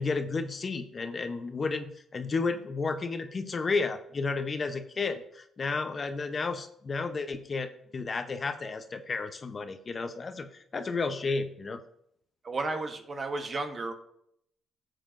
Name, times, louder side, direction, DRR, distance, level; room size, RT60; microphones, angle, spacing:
voice 1, 0.0-11.8, left 4 dB, 40° left, 8 dB, 0.7 m, -32 dB
voice 2, 12.4-13.9, right 3 dB, 40° right, 6 dB, 1.1 m, -33 dB
11.0 x 7.6 x 2.6 m, 0.71 s
cardioid pair, 90°, 0 cm